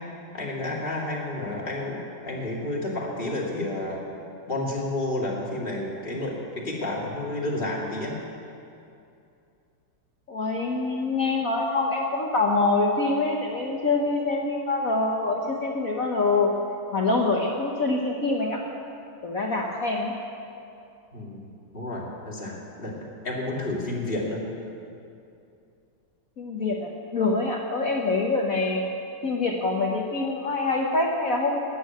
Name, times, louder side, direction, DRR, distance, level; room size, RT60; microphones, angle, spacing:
voice 1, 0.3-4.0 4.4-8.1 21.1-21.5 21.7-24.4, left 2 dB, 25° left, -3 dB, 2.6 m, -30 dB
voice 2, 10.3-16.5 16.9-18.6 19.2-20.1 26.4-28.8 29.2-31.6, left 3 dB, 50° left, 0 dB, 1.2 m, -25 dB
13.0 x 9.3 x 9.2 m, 2.6 s
omnidirectional pair, 2.3 m